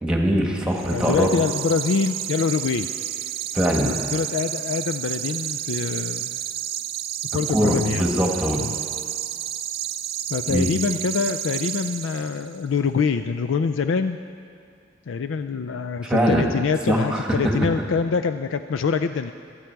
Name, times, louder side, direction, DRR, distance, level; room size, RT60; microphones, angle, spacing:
voice 1, 0.0-1.3 3.5-3.9 7.5-8.6 10.5-10.7 16.0-16.5 16.9-17.5, equal, 5° right, 0 dB, 1.6 m, -22 dB
sound 1, 0.7-12.6, right 11 dB, 50° right, 0.5 m, -31 dB
voice 2, 0.9-2.9 3.8-6.4 7.3-8.1 8.6-8.8 10.3-14.2 15.1-19.3, left 5 dB, 85° left, 10 dB, 0.4 m, -25 dB
25.5 x 8.9 x 4.6 m, 2.3 s
head